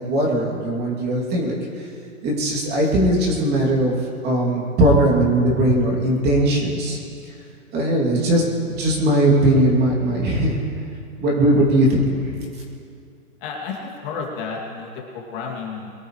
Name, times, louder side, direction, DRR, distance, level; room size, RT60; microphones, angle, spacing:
voice 1, 0.0-1.9 2.2-3.9 4.2-7.0 7.7-10.6 11.2-12.3, right 1 dB, 20° right, -2 dB, 3.0 m, -19 dB
voice 2, 13.4-15.9, left 5 dB, 35° left, -2 dB, 2.8 m, -31 dB
23.0 x 13.5 x 3.3 m, 2.4 s
hypercardioid pair, 135°, 43 cm